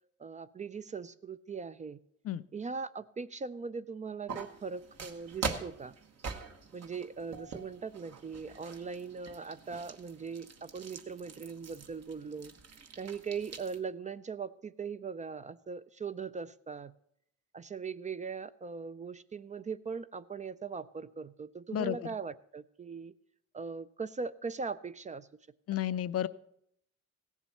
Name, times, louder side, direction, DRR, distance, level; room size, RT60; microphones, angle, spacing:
voice 1, 0.2-2.0 2.5-5.9 6.7-12.5 12.9-16.9 17.5-23.1 23.5-25.3, right 5 dB, 25° right, 14 dB, 0.4 m, -40 dB
sound 1, 4.3-13.8, right 5 dB, 55° right, 1.2 m, -44 dB
voice 2, 21.7-22.1 25.7-26.3, left 11 dB, 55° left, 16 dB, 0.4 m, -32 dB
16.0 x 7.2 x 5.5 m, 0.71 s
cardioid pair, 90°, 30 cm